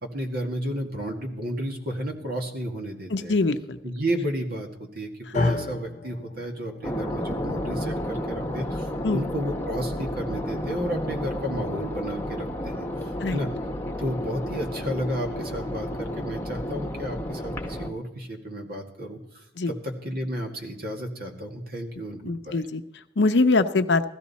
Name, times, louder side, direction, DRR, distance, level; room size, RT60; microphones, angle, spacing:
voice 1, 0.0-3.4 3.8-13.5 14.0-22.6, equal, 60° right, 3 dB, 2.0 m, -32 dB
voice 2, 3.1-3.8 5.4-5.5 9.0-9.2 13.2-13.4 19.6-19.7 22.2-22.8 23.2-24.0, left 3 dB, 75° left, 10 dB, 0.7 m, -23 dB
sound 1, 5.3-13.6, left 2 dB, 45° left, 0.9 m, -35 dB
sound 2, 6.8-17.9, left 1 dB, 15° left, 1.2 m, -31 dB
16.0 x 13.5 x 4.2 m, 0.91 s
head